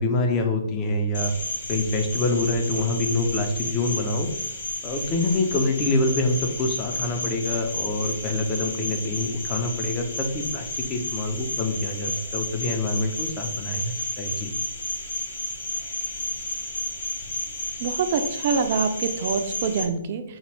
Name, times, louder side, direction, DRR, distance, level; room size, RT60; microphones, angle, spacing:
voice 1, 0.0-1.3 1.7-4.3 4.8-14.5, left 2 dB, 20° left, 3 dB, 0.5 m, -26 dB
Cricket, 1.1-19.8, left 1 dB, 55° left, 1.4 m, -32 dB
voice 2, 17.8-20.2, right 5 dB, 40° right, 7 dB, 0.4 m, -25 dB
3.9 x 2.4 x 3.3 m, 0.79 s
figure-of-eight pair, 125°, 0 cm